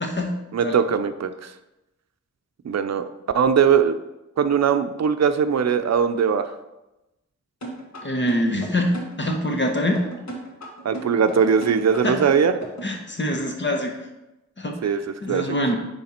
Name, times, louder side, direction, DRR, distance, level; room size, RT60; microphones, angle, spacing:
voice 1, 0.0-0.7 8.0-10.0 12.0-12.2 12.8-13.9 14.6-15.7, left 1 dB, 40° left, 2 dB, 1.2 m, -25 dB
voice 2, 0.5-1.5 2.6-3.1 3.3-4.0 4.4-6.5 10.8-12.5 14.8-15.0 15.3-15.5, right 7 dB, 65° right, 10 dB, 0.5 m, -20 dB
sound 1, 7.6-13.0, right 2 dB, 65° left, 1.8 m, -35 dB
9.8 x 3.4 x 4.3 m, 0.96 s
wide cardioid pair, 115°, 29 cm